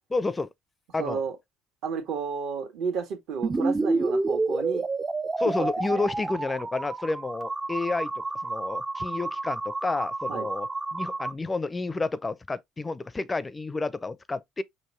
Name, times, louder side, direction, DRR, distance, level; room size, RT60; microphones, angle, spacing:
voice 1, 0.1-0.5 0.9-1.2 5.4-8.1 8.4-14.6, left 3 dB, 25° left, 0.6 m, -30 dB
voice 2, 1.0-1.4 1.8-4.8 5.6-6.0 10.3-10.5, right 6 dB, 65° right, 1.5 m, -32 dB
sound 1, 3.4-11.3, right 3 dB, 25° right, 0.5 m, -29 dB
5.6 x 2.6 x 3.2 m
hypercardioid pair, 65°, 0 cm